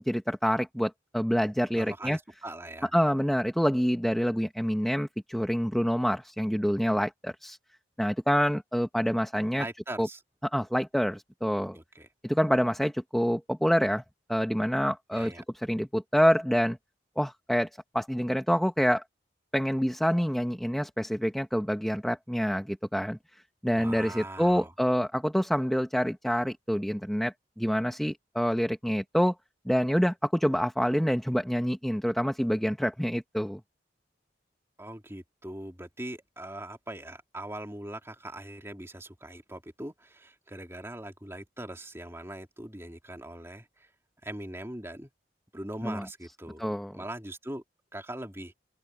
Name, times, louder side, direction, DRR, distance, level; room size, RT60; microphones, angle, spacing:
voice 1, 0.0-2.2 2.9-7.6 8.0-9.6 10.0-10.1 10.5-11.8 12.2-14.0 14.3-16.8 17.2-17.7 17.9-19.0 19.5-23.2 23.6-29.3 29.7-33.6 45.8-46.0 46.6-46.9, equal, ahead, 1.1 m, -27 dB
voice 2, 1.8-2.9 9.6-10.2 11.7-12.1 15.1-15.4 23.7-24.7 34.8-43.9 44.2-45.1 45.5-46.6 46.9-47.6 47.9-48.5, right 1 dB, 15° right, 3.0 m, -41 dB
open air
head